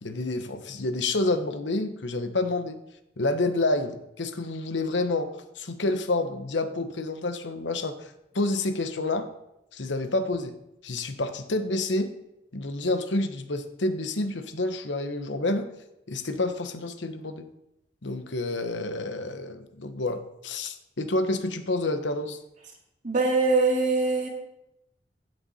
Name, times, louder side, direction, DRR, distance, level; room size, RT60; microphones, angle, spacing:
voice 1, 0.0-2.8 3.2-9.3 9.7-10.5 10.8-12.1 12.5-15.7 16.1-17.5 18.0-22.4, left 2 dB, 80° left, 9 dB, 1.0 m, -29 dB
voice 2, 23.0-24.3, right 3 dB, 45° right, 0 dB, 2.2 m, -22 dB
16.0 x 6.7 x 4.2 m, 0.86 s
head